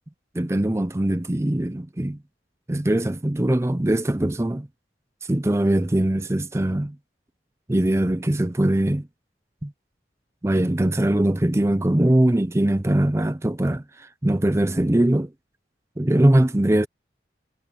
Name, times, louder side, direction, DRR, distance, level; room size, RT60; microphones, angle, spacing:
voice 1, 0.3-2.2 2.7-4.7 5.3-7.0 7.7-9.1 9.6-9.7 10.4-15.3 16.0-16.9, right 1 dB, 15° right, 0.5 m, -21 dB
head